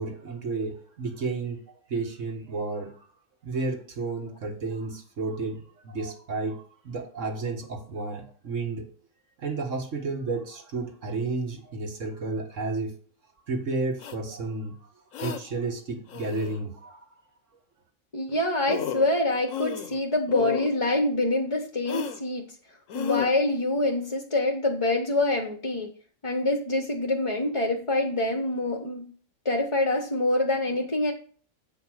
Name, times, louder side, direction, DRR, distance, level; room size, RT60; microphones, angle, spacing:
voice 1, 0.0-3.1 3.4-8.9 9.4-13.0 13.5-14.9 15.2-17.0, right 3 dB, 60° right, 3 dB, 2.0 m, -32 dB
sound 1, 14.0-14.2 15.1-15.4 16.1-16.6 18.3-18.4 18.7-19.1 19.5-20.0 20.3-20.7 21.9-22.2 22.9-23.3, left 9 dB, 70° left, 1.1 m, -32 dB
voice 2, 18.1-22.5 22.9-25.9 26.2-29.1 29.4-31.1, left 2 dB, 25° left, 4 dB, 0.9 m, -25 dB
8.4 x 5.1 x 6.3 m, 0.44 s
omnidirectional pair, 1.5 m